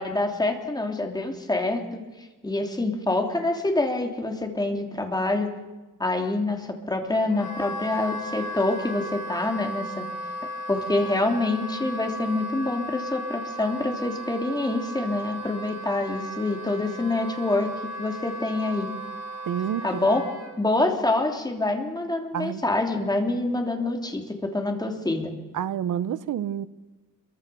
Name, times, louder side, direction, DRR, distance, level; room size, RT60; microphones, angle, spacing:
voice 1, 0.0-5.5 6.0-10.0 10.7-17.7 18.0-18.9 19.8-20.2 20.6-25.3, left 2 dB, 10° left, 3 dB, 3.1 m, -26 dB
Wind instrument woodwind instrument, 7.3-20.5, equal, 70° left, 6.6 m, -36 dB
voice 2, 19.5-20.0 22.3-22.6 25.5-26.7, right 10 dB, 70° right, 15 dB, 1.1 m, -28 dB
26.5 x 23.5 x 7.0 m, 1.2 s
cardioid pair, 150°, 32 cm